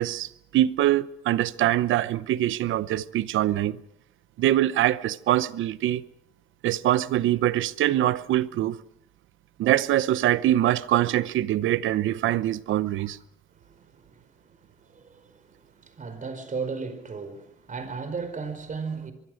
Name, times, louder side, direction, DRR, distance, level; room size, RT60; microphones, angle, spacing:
voice 1, 0.0-3.8 4.4-6.0 6.6-8.8 9.6-13.2, right 13 dB, 80° right, 0.9 m, -23 dB
voice 2, 13.5-14.3 14.8-19.1, right 5 dB, 40° right, 4.8 m, -36 dB
24.0 x 23.5 x 6.5 m
cardioid pair, 90°, 20 cm